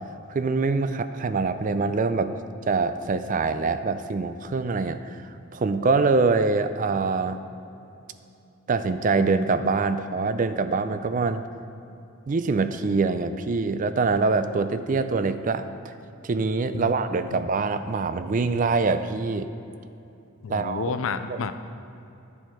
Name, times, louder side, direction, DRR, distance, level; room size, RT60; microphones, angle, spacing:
voice 1, 0.3-2.4 2.7-7.4 8.7-11.4 12.3-15.9 16.2-19.5 20.5-21.0 21.3-21.4, right 4 dB, 40° right, 11 dB, 0.4 m, -24 dB
voice 2, 20.4-21.5, left 5 dB, 75° left, 10 dB, 0.5 m, -30 dB
12.0 x 7.1 x 4.5 m, 2.7 s
head